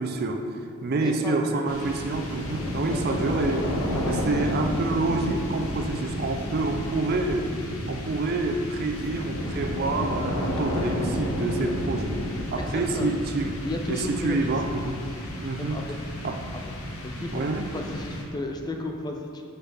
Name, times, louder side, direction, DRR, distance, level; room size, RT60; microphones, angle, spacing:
voice 1, 0.0-3.7 4.0-7.5 7.9-13.6 13.9-15.0 15.4-15.8 16.2-16.4 17.2-17.7, right 3 dB, 45° right, 4 dB, 0.4 m, -28 dB
voice 2, 1.0-1.8 2.9-3.3 3.8-4.2 11.7-12.0 12.6-13.2 13.6-14.6 15.6-15.9 16.5-16.6 17.0-17.4 17.7-19.4, left 1 dB, 20° left, 2 dB, 0.4 m, -34 dB
sound 1, 1.7-18.6, equal, 75° left, 1.0 m, -31 dB
5.7 x 5.7 x 3.4 m, 2.5 s
head